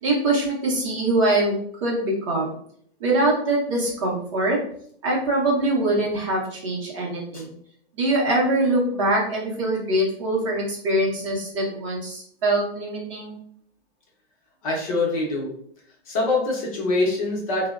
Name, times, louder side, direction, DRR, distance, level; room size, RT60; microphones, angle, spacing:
voice 1, 0.0-1.6 1.8-2.5 3.0-4.6 5.0-7.5 7.9-13.4, right 1 dB, 30° right, -3 dB, 0.6 m, -23 dB
voice 2, 14.6-15.5 16.1-17.7, left 2 dB, 35° left, -2 dB, 0.6 m, -24 dB
3.0 x 2.0 x 2.3 m, 0.64 s
hypercardioid pair, 150°, 33 cm